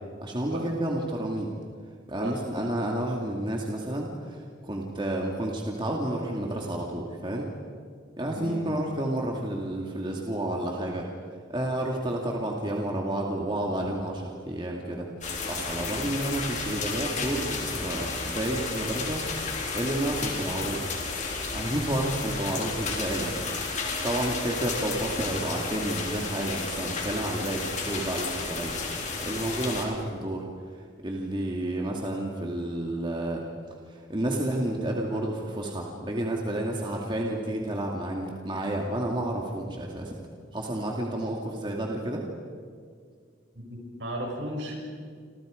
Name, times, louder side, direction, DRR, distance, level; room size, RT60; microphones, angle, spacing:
voice 1, 0.2-1.5 2.1-7.5 8.2-11.1 11.5-15.1 15.5-19.2 19.7-21.0 21.5-23.4 24.0-28.8 29.2-30.5 30.7-40.1 40.5-42.2, right 1 dB, 25° right, -1 dB, 2.2 m, -30 dB
voice 2, 8.2-8.8 43.5-44.7, equal, 70° right, 0 dB, 6.9 m, -35 dB
sound 1, 15.2-29.8, left 4 dB, 40° left, 3.8 m, -32 dB
28.0 x 27.0 x 5.1 m, 2.1 s
head